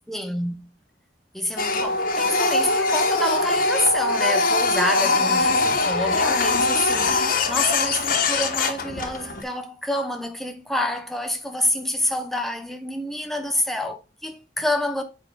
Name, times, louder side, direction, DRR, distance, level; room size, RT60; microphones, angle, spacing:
voice 1, 0.1-0.7 1.3-15.0, left 1 dB, ahead, 0.9 m, -28 dB
Printer, 1.6-9.4, left 3 dB, 50° left, 1.2 m, -22 dB
7.3 x 5.0 x 3.8 m
head